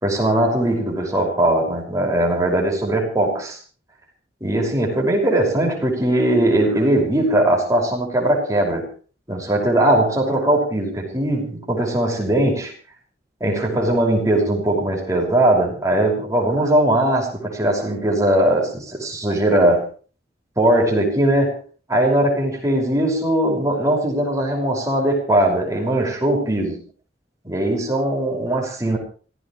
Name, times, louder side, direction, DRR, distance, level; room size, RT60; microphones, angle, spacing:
voice 1, 0.0-3.6 4.4-8.9 9.3-12.7 13.4-19.8 20.6-21.6 21.9-26.8 27.4-29.0, right 1 dB, 20° right, 0 dB, 5.8 m, -19 dB
26.5 x 16.5 x 3.2 m, 0.40 s
head